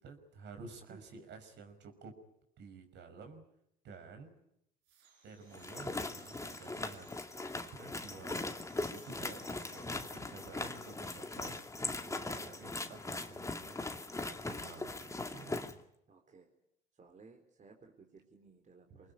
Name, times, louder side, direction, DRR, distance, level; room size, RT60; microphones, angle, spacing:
voice 1, 0.0-2.1 2.6-3.4 3.8-4.3 5.2-7.1 7.6-8.5 8.9-11.6 12.0-13.9 14.5-15.8 18.9-19.1, right 4 dB, 60° right, 6 dB, 5.6 m, -52 dB
sound 1, 4.8-7.4 8.2-10.1, right 8 dB, 90° right, 5.3 m, -64 dB
sound 2, 5.5-15.7, left 2 dB, 15° left, 2.2 m, -40 dB
voice 2, 16.1-16.5 16.9-19.1, right 4 dB, 35° right, 3 dB, 4.2 m, -58 dB
25.0 x 20.0 x 9.9 m, 0.78 s
supercardioid pair, 75°, 21 cm